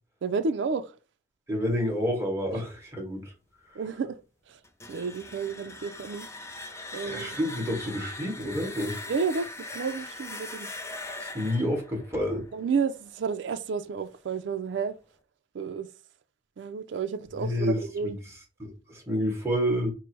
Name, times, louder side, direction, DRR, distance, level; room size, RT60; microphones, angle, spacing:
voice 1, 0.2-1.0 2.5-2.6 3.7-4.2 4.5-4.6 4.9-6.3 6.9-7.4 9.1-10.7 12.5-15.0 15.5-15.9 16.6-18.2, right 5 dB, 70° right, 0.4 m, -31 dB
voice 2, 1.5-3.3 7.0-9.0 10.9-12.4 17.4-17.8 18.0-18.1 18.6-19.9, equal, 15° right, 1.3 m, -29 dB
sound 1, 4.6-13.5, left 2 dB, 15° left, 0.4 m, -41 dB
4.6 x 2.0 x 4.5 m
head